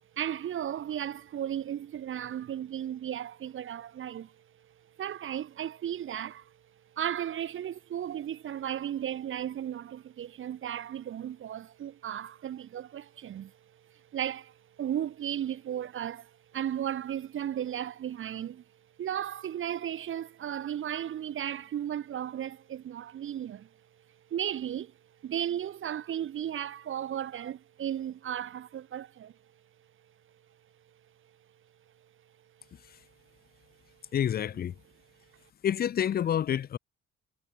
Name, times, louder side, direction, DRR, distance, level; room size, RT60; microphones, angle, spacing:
voice 1, 0.1-6.6 6.9-18.6 19.0-23.7 24.3-24.9 25.2-29.3, right 10 dB, 45° right, 0.5 m, -35 dB
voice 2, 34.1-34.7 35.6-36.8, left 9 dB, 35° left, 0.4 m, -28 dB
cardioid pair, 90°, 30 cm